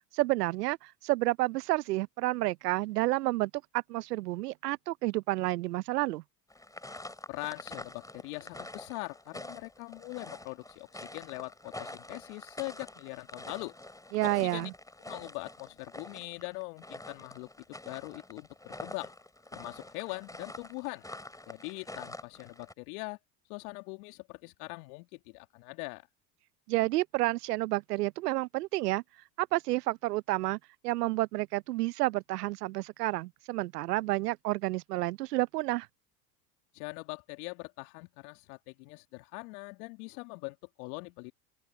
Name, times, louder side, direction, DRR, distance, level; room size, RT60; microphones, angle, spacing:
voice 1, 0.1-6.2 14.1-14.7 26.7-29.0 29.4-30.6 30.8-35.9, right 19 dB, 75° right, 0.9 m, -30 dB
sound 1, 6.5-22.7, left 2 dB, 5° left, 6.7 m, -46 dB
voice 2, 7.3-13.8 14.2-14.7 15.1-17.5 17.8-19.1 19.5-21.0 21.5-23.2 23.5-26.1 36.7-41.3, left 29 dB, 65° left, 2.7 m, -42 dB
open air
hypercardioid pair, 80°, 48 cm